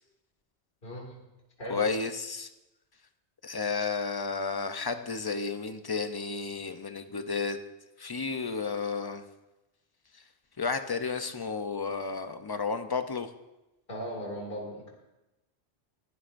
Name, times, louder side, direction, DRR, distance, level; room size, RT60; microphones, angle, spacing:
voice 1, 0.8-1.2 1.6-1.8 13.9-14.9, equal, 55° left, -1 dB, 2.5 m, -38 dB
voice 2, 1.7-2.5 3.4-7.6 8.0-9.2 10.6-13.3, left 4 dB, 25° left, 8 dB, 0.5 m, -32 dB
20.5 x 12.5 x 2.6 m, 0.99 s
omnidirectional pair, 1.1 m